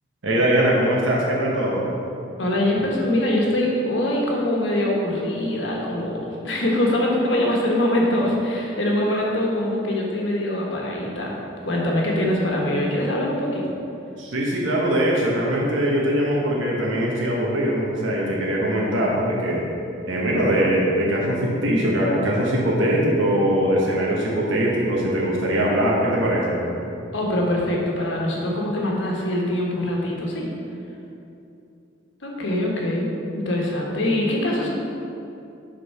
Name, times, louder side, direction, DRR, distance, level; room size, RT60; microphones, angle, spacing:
voice 1, 0.2-1.8 14.2-19.6 20.0-26.6, equal, 85° right, -4 dB, 1.1 m, -21 dB
voice 2, 2.4-11.4 11.6-13.6 27.1-30.5 32.2-34.7, left 1 dB, 75° left, -2 dB, 1.2 m, -23 dB
6.5 x 3.8 x 5.7 m, 2.7 s
head